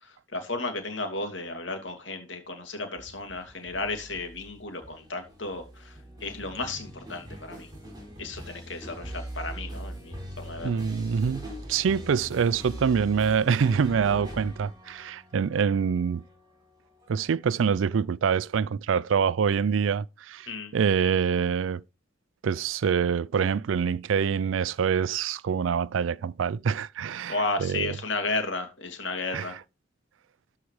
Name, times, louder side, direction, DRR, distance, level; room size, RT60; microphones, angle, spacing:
voice 1, 0.0-7.7 8.2-10.7 20.5-20.7 21.0-21.1 27.3-29.6, left 3 dB, 70° left, 2.6 m, -33 dB
sound 1, 3.0-18.0, equal, 20° right, 3.6 m, -42 dB
voice 2, 10.6-16.2 17.1-21.8 22.4-28.0 29.3-29.5, right 6 dB, 85° right, 0.4 m, -25 dB
13.0 x 4.8 x 4.8 m
head